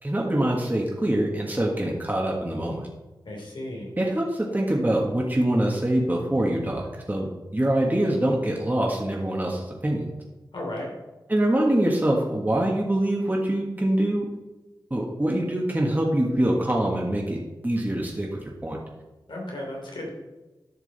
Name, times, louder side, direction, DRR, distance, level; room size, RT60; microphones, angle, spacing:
voice 1, 0.0-2.9 4.0-10.0 11.3-14.2 14.9-18.8, right 1 dB, 20° right, -2 dB, 1.6 m, -24 dB
voice 2, 3.3-3.9 10.5-10.9 19.3-20.1, left 1 dB, 80° left, -1 dB, 3.0 m, -34 dB
11.0 x 6.1 x 4.2 m, 1.1 s
wide cardioid pair, 55°, 8 cm